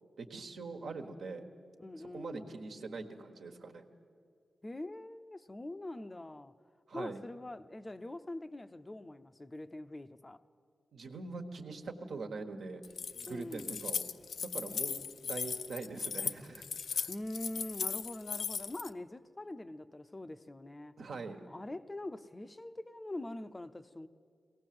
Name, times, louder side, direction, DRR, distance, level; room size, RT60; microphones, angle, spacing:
voice 1, 0.2-1.4 2.0-3.8 6.9-7.2 10.9-12.8 13.1-14.0 14.4-16.6 16.9-17.1 21.0-21.4, right 3 dB, 80° right, 4 dB, 1.5 m, -43 dB
voice 2, 1.8-2.5 4.6-6.5 6.9-10.4 13.3-13.8 17.1-20.9 21.5-24.1, left 1 dB, 20° left, 11 dB, 0.6 m, -44 dB
Keys jangling, 12.8-18.9, left 6 dB, 80° left, 0.5 m, -37 dB
22.5 x 17.5 x 7.8 m, 2.3 s
wide cardioid pair, 90°, 0 cm